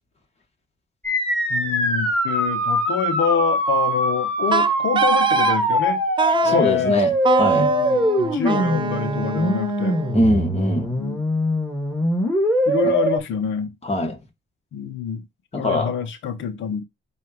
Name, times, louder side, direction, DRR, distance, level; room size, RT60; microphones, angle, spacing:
sound 1, 1.0-13.2, equal, 5° left, 2.6 m, -22 dB
voice 1, 1.5-6.0 6.4-7.0 7.4-10.0 11.0-11.2 12.7-13.7 14.7-15.2 15.5-16.8, left 7 dB, 75° left, 1.1 m, -26 dB
Wind instrument woodwind instrument, 4.5-5.6 6.2-6.6 7.2-10.2, right 7 dB, 25° right, 0.4 m, -23 dB
voice 2, 6.4-7.7 10.1-11.0 12.8-12.9 13.8-14.2 15.5-15.9, left 1 dB, 30° left, 2.0 m, -22 dB
8.3 x 2.8 x 4.7 m
cardioid pair, 90°, 20 cm